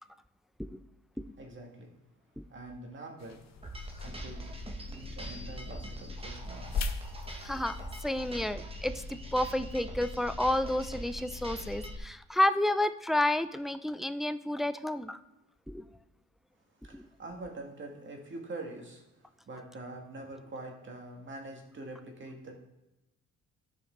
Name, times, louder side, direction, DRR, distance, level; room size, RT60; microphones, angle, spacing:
voice 1, 1.4-1.9 2.5-3.4 4.0-4.5 4.9-6.9 16.8-19.0 19.5-22.6, right 2 dB, 40° right, 2 dB, 2.0 m, -44 dB
sound 1, 3.2-8.5, left 4 dB, 60° left, 0.8 m, -41 dB
sound 2, 3.6-12.0, equal, 20° right, 1.1 m, -41 dB
voice 2, 7.4-7.7 8.0-15.2 15.7-15.9 16.9-17.0, left 1 dB, ahead, 11 dB, 0.4 m, -30 dB
13.5 x 5.2 x 3.8 m, 0.95 s
cardioid pair, 90°, 30 cm